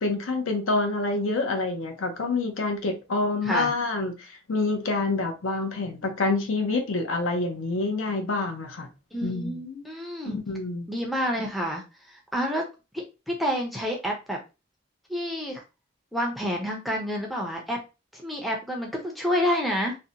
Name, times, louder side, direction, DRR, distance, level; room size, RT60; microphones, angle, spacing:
voice 1, 0.0-8.9 9.2-9.6 10.2-10.9, left 3 dB, 80° left, 0.6 m, -27 dB
voice 2, 9.1-10.4 10.9-12.6 12.9-14.4 15.1-15.6 16.1-17.8 18.1-20.0, equal, ahead, 0.4 m, -29 dB
2.6 x 2.1 x 2.7 m
head